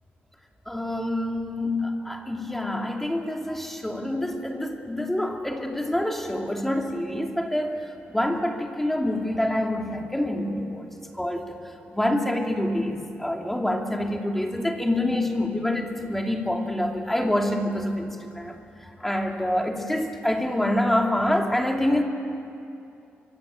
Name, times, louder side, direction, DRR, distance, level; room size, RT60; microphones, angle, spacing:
voice 1, 0.7-10.9 11.1-18.6 18.8-22.0, left 1 dB, 5° left, 2 dB, 2.6 m, -26 dB
25.0 x 24.0 x 8.9 m, 2.6 s
cardioid pair, 130°, 4 cm